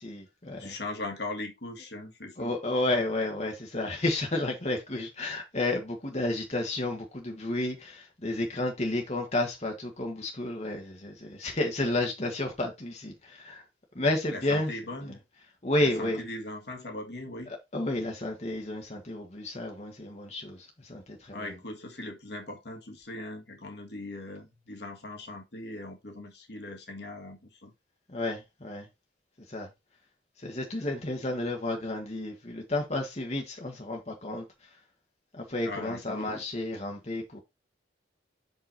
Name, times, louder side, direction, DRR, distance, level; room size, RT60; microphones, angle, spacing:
voice 1, 0.0-0.7 2.4-13.6 13.9-14.7 15.6-16.2 17.7-21.5 28.1-28.9 29.5-29.7 30.4-34.4 35.3-37.4, left 2 dB, 35° left, 1.6 m, -31 dB
voice 2, 0.6-2.5 14.3-15.2 15.8-17.5 21.3-27.7 35.6-36.3, left 2 dB, 60° left, 1.8 m, -40 dB
6.1 x 5.5 x 4.2 m
head